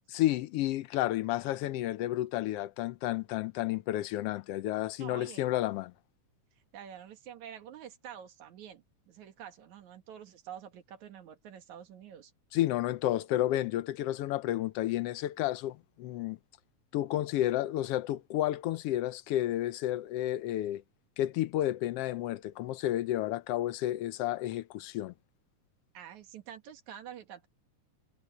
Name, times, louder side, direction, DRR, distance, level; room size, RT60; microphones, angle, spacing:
voice 1, 0.1-5.9 12.5-16.4 16.9-20.8 21.2-25.1, left 14 dB, 85° left, 1.3 m, -31 dB
voice 2, 5.0-5.4 6.7-12.3 25.9-27.5, right 9 dB, 75° right, 2.9 m, -47 dB
omnidirectional pair, 3.4 m